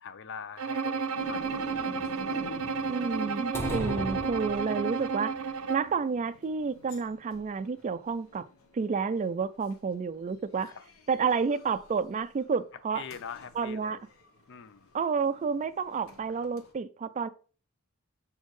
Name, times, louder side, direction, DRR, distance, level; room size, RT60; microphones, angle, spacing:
voice 1, 0.0-1.7 2.3-2.4 10.6-10.8 12.9-14.0 14.5-14.9, left 7 dB, 60° left, 0.5 m, -44 dB
Bowed string instrument, 0.6-6.0, right 5 dB, 85° right, 0.5 m, -32 dB
sound 1, 1.2-12.4 13.1-16.7, left 1 dB, 75° left, 1.0 m, -47 dB
voice 2, 2.9-5.4 5.7-8.5 8.7-10.7 11.1-13.0 13.6-14.0 14.9-17.3, right 5 dB, 35° right, 0.3 m, -30 dB
sound 2, 3.5-5.1, left 1 dB, 10° left, 0.8 m, -35 dB
7.0 x 4.2 x 3.1 m
head